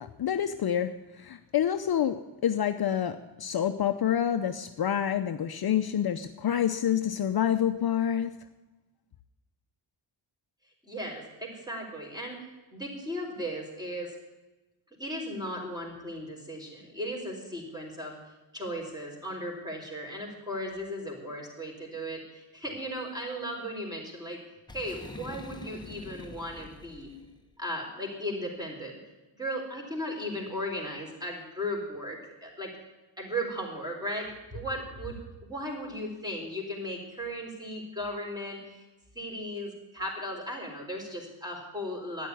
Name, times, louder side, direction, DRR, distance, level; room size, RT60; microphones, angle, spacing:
voice 1, 0.0-8.3, left 9 dB, 50° left, 8 dB, 0.7 m, -28 dB
voice 2, 10.8-14.2 15.0-18.2 18.5-24.4 24.7-27.1 27.6-29.0 29.3-32.7 33.2-35.2 35.5-38.9 39.1-42.3, equal, 10° right, 0 dB, 4.0 m, -36 dB
Boom, 24.7-27.4, left 1 dB, 10° left, 1.0 m, -45 dB
13.0 x 10.0 x 9.5 m, 1.1 s
wide cardioid pair, 165°, 48 cm